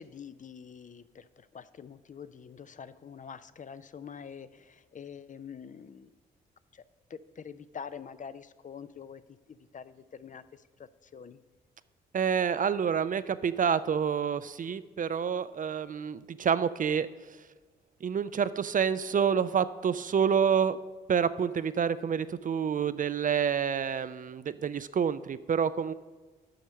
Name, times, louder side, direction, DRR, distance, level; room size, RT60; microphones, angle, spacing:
voice 1, 0.0-6.1 6.7-6.8 7.1-9.2 9.5-10.6 11.0-11.4, left 7 dB, 40° left, 14 dB, 0.5 m, -45 dB
voice 2, 12.1-17.5 18.0-20.8 21.1-25.9, right 7 dB, 40° right, 14 dB, 0.4 m, -28 dB
7.7 x 5.5 x 6.3 m, 1.3 s
hypercardioid pair, 45°, 21 cm